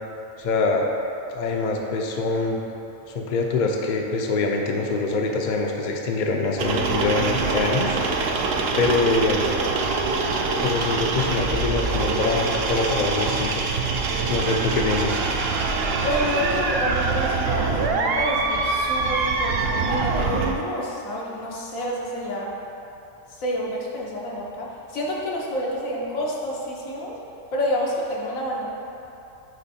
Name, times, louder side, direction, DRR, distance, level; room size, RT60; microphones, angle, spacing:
voice 1, 0.4-0.9 1.3-2.6 3.1-8.0 8.8-9.4 10.6-13.6 14.3-15.3, left 3 dB, 50° left, 1 dB, 0.6 m, -24 dB
sound 1, 6.6-20.5, right 4 dB, 60° right, 0.7 m, -24 dB
voice 2, 8.6-9.0 16.0-22.5 23.4-27.2 27.5-28.7, equal, 85° left, -3 dB, 1.4 m, -28 dB
6.6 x 4.4 x 4.3 m, 2.9 s
omnidirectional pair, 1.4 m